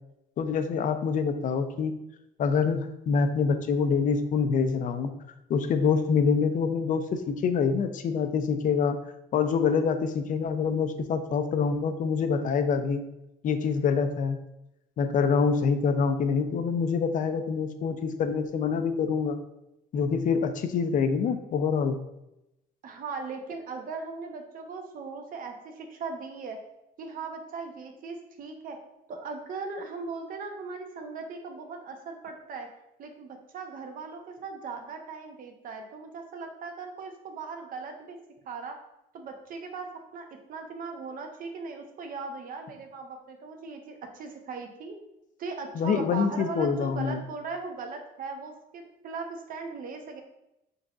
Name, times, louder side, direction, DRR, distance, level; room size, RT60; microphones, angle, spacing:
voice 1, 0.4-1.9 2.4-5.1 5.5-9.0 9.3-13.0 13.4-14.4 15.0-19.4 19.9-22.0 45.7-47.2, left 5 dB, 50° left, 9 dB, 0.5 m, -26 dB
voice 2, 22.8-26.6 27.0-28.8 29.1-32.7 33.0-38.2 38.4-38.8 39.1-45.0 45.4-50.2, right 4 dB, 55° right, 4 dB, 0.8 m, -38 dB
5.5 x 3.9 x 2.4 m, 0.87 s
cardioid pair, 110°, 17 cm